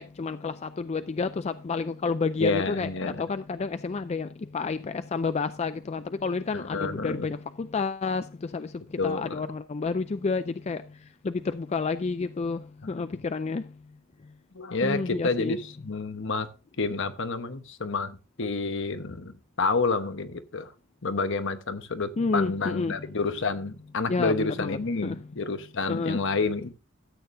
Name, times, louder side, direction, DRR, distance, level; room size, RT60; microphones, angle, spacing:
voice 1, 0.0-8.7 9.0-10.8 11.2-13.6 14.8-15.6 22.2-23.1 24.1-25.2 25.9-26.2, left 4 dB, 30° left, 0.4 m, -30 dB
voice 2, 2.4-3.2 6.5-7.3 9.0-9.4 12.8-13.0 14.5-16.5 16.8-20.7 21.0-26.7, left 3 dB, 65° left, 1.1 m, -29 dB
13.0 x 8.7 x 2.6 m
head